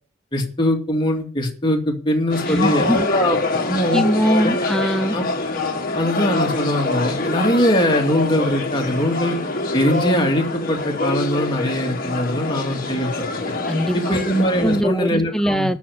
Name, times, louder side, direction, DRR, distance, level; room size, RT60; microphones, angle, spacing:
voice 1, 0.3-3.4 3.6-4.0 4.4-4.6 5.1-5.5 6.0-9.4 9.7-13.1 13.5-13.6 13.9-15.7, equal, 25° left, 2.5 m, -21 dB
sound 1, 2.3-14.8, left 3 dB, 45° left, 1.9 m, -25 dB
voice 2, 2.5-3.1 3.9-5.2 13.7-14.2 14.6-15.8, equal, 5° left, 0.7 m, -21 dB
12.5 x 6.1 x 9.5 m
head